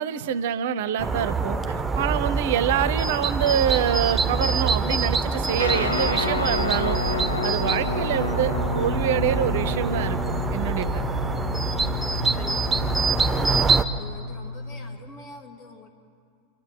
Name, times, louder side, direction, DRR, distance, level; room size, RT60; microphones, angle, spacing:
voice 1, 0.0-7.0 7.4-11.0, right 9 dB, 55° right, 15 dB, 0.7 m, -26 dB
sound 1, 1.0-13.9, right 4 dB, 10° right, 1.0 m, -25 dB
Guitar, 5.6-15.0, left 2 dB, 75° left, 1.4 m, -30 dB
voice 2, 12.3-13.5 14.0-15.9, left 4 dB, 40° left, 2 dB, 3.1 m, -45 dB
28.0 x 12.0 x 7.8 m, 2.3 s
figure-of-eight pair, 90°, 0 cm